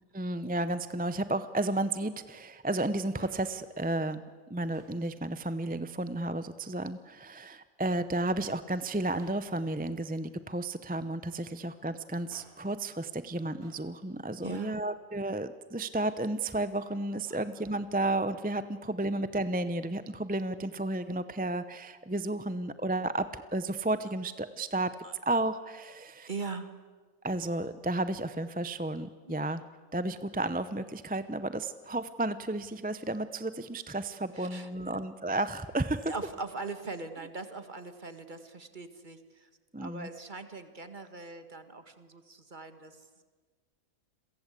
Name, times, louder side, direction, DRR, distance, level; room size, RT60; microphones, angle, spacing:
voice 1, 0.1-4.2 4.5-24.9 25.2-26.3 27.2-29.6 29.9-36.1 39.7-40.1, right 2 dB, 10° right, 12 dB, 0.5 m, -32 dB
Male speech man speaking, 3.2-3.8 4.7-5.1 5.9-6.7 7.8-8.2 9.2-10.8 12.1-12.7 13.6-13.9 14.2-14.3, right 2 dB, 85° right, 3.6 m, -58 dB
voice 2, 14.4-14.8 17.3-17.4 25.0-25.1 26.3-26.8 29.3-29.4 34.3-34.7 36.1-39.5 39.8-43.0, right 3 dB, 35° right, 9 dB, 1.9 m, -41 dB
30.0 x 23.0 x 8.3 m, 1.4 s
omnidirectional pair, 1.5 m